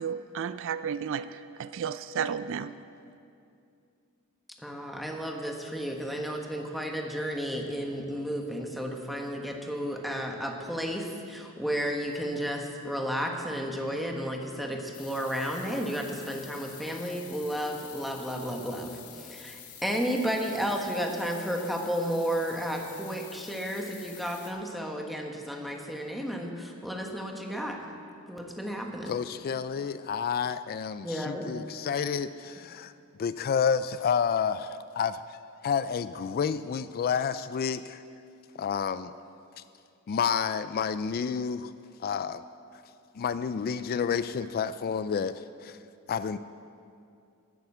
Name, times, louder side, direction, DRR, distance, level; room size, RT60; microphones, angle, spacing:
voice 1, 0.0-2.7, right 7 dB, 60° right, 14 dB, 0.4 m, -33 dB
voice 2, 4.6-27.8 28.3-29.1 31.0-31.5, equal, ahead, 1 dB, 1.3 m, -32 dB
sound 1, 14.9-24.5, left 9 dB, 80° left, 1.8 m, -48 dB
voice 3, 29.1-32.9 33.2-35.4 35.6-38.0 38.6-39.1 40.1-41.7 42.0-42.4 43.2-45.8 46.1-46.4, left 6 dB, 45° left, 13 dB, 0.3 m, -30 dB
12.5 x 9.2 x 7.9 m, 2.5 s
head